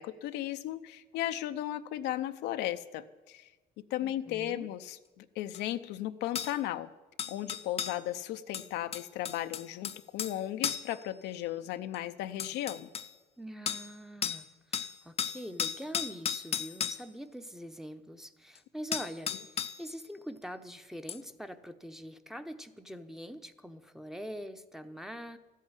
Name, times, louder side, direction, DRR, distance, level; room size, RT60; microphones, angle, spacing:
voice 1, 0.0-3.5 3.9-6.9 7.3-12.9, left 13 dB, 85° left, 9 dB, 0.7 m, -35 dB
voice 2, 4.0-4.7 13.4-25.4, equal, ahead, 9 dB, 0.8 m, -44 dB
sound 1, 5.5-5.6 6.3-6.5 7.2-8.0 8.5-10.4 10.6-10.9 11.9-12.0 12.4-13.1 13.7-13.9 14.2-14.4 14.7-17.0 18.5-18.6 18.9-19.8 21.1-21.2, left 8 dB, 35° left, 0.6 m, -35 dB
13.5 x 8.4 x 9.9 m, 1.2 s
cardioid pair, 110°, 17 cm